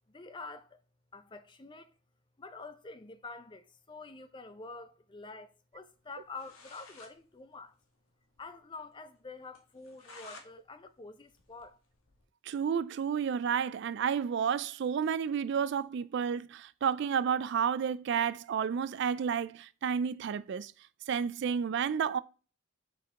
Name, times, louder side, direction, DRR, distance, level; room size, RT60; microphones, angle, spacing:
voice 1, 0.1-0.6 1.1-1.8 2.4-3.6 3.9-5.5 5.7-7.7 8.4-11.7, left 3 dB, 25° left, 0.5 m, -47 dB
sound 1, 6.1-6.2 6.3-7.1 7.5-7.6 7.8-7.9 8.3-8.4 8.8-8.9 9.5-10.5 10.9-12.2, left 3 dB, 90° left, 1.3 m, -53 dB
voice 2, 12.5-20.7 21.1-22.2, right 7 dB, 55° right, 0.3 m, -31 dB
7.8 x 4.6 x 3.6 m
head